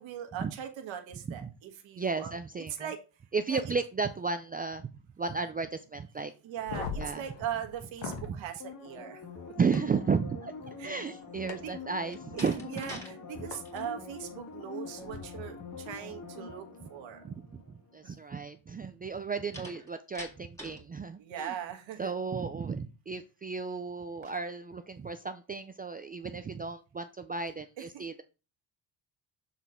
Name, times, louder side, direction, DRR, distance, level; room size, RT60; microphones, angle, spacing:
voice 1, 0.0-2.3 2.8-3.0 3.5-3.6 6.4-9.2 10.8-11.1 11.6-11.7 12.3-12.5 12.7-16.6 16.9-17.2 21.2-22.1 27.8-28.0, right 9 dB, 90° right, 5 dB, 1.5 m, -40 dB
voice 2, 2.0-2.9 3.3-4.9 5.2-6.3 7.0-7.2 8.3-8.4 9.6-12.8 16.8-16.9 17.2-21.5 22.0-28.2, right 5 dB, 20° right, 9 dB, 0.3 m, -34 dB
sound 1, 6.6-8.3 9.7-9.8 11.5-11.6 13.5-13.6 15.0-15.2, left 5 dB, 70° left, 1.6 m, -39 dB
sound 2, 8.6-18.0 18.3-18.4, left 4 dB, 40° left, 1.8 m, -45 dB
Slam, 12.0-13.1 13.5-13.9 19.5-20.9, left 1 dB, 5° left, 1.9 m, -45 dB
7.3 x 4.0 x 4.3 m, 0.31 s
cardioid pair, 120°, 45 cm